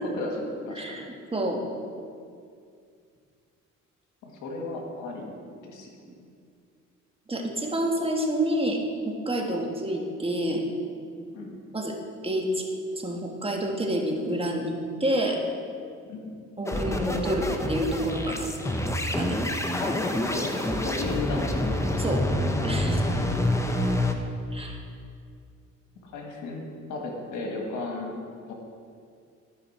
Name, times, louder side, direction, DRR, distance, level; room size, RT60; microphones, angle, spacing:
voice 1, 0.0-1.0 4.2-5.3 5.6-5.9 11.3-11.6 16.1-16.3 18.5-18.8 19.8-21.7 26.0-26.6 26.9-28.2 28.5-28.6, left 2 dB, 85° left, 1 dB, 1.6 m, -34 dB
voice 2, 0.7-1.6 7.3-8.8 9.1-10.6 11.7-11.9 12.2-12.6 13.0-14.7 15.0-15.4 16.6-18.5 19.2-19.4 22.0-22.2 22.6-23.0 24.5-24.8, right 1 dB, 20° right, 1 dB, 1.3 m, -28 dB
sound 1, 16.7-24.1, left 1 dB, 10° left, 0.7 m, -27 dB
13.5 x 5.4 x 4.2 m, 2.3 s
cardioid pair, 90°, 30 cm